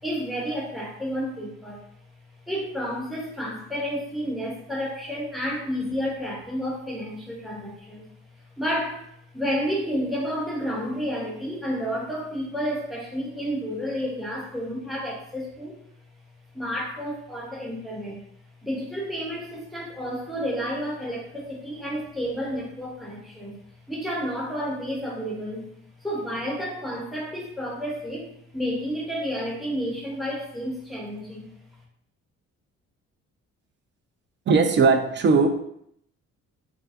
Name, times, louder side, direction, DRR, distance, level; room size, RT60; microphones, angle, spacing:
voice 1, 0.0-1.8 2.5-8.1 8.6-15.7 16.5-18.2 18.6-23.5 23.9-25.7 26.0-31.5, equal, ahead, -4 dB, 1.1 m, -31 dB
voice 2, 34.5-35.5, right 4 dB, 40° right, 6 dB, 0.4 m, -18 dB
3.5 x 2.2 x 2.4 m, 0.69 s
cardioid pair, 90°, 30 cm